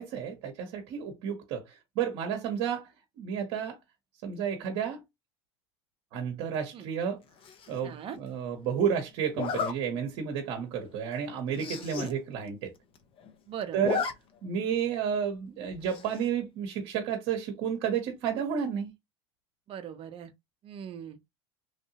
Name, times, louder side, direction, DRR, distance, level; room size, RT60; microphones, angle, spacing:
voice 1, 0.0-2.9 3.2-3.8 4.2-5.0 6.1-7.2 7.7-12.7 13.7-14.1 14.4-18.9, right 8 dB, 60° right, 1.0 m, -31 dB
Zipper (clothing), 7.4-7.8 9.3-9.7 10.3-10.5 10.8-10.9 11.1-11.2 11.5-12.1 12.5-12.6 12.8-13.3 13.6-14.1 14.5-14.6 15.9-16.3, left 6 dB, 40° left, 0.8 m, -33 dB
voice 2, 7.8-8.2 12.0-12.1 13.5-13.8 19.7-20.3 20.6-21.2, right 8 dB, 45° right, 0.8 m, -40 dB
3.2 x 2.7 x 2.8 m
hypercardioid pair, 90°, 14 cm